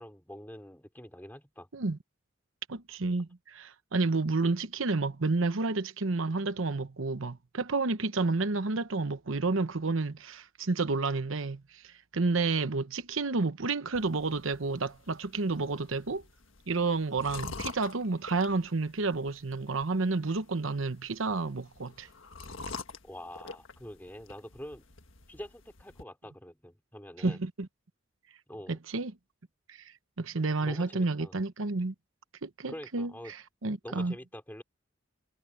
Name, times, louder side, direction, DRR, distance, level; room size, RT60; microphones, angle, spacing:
voice 1, 0.0-1.7 23.0-24.9 25.3-27.4 28.5-28.8 30.6-31.4 32.7-33.3 33.8-34.6, equal, 10° left, 3.8 m, -45 dB
voice 2, 2.7-16.2 16.7-22.1 27.2-27.7 28.7-29.1 29.7-29.8 30.2-31.9 32.4-34.1, right 3 dB, 80° right, 1.0 m, -30 dB
sound 1, 13.9-26.0, left 4 dB, 75° left, 1.6 m, -47 dB
head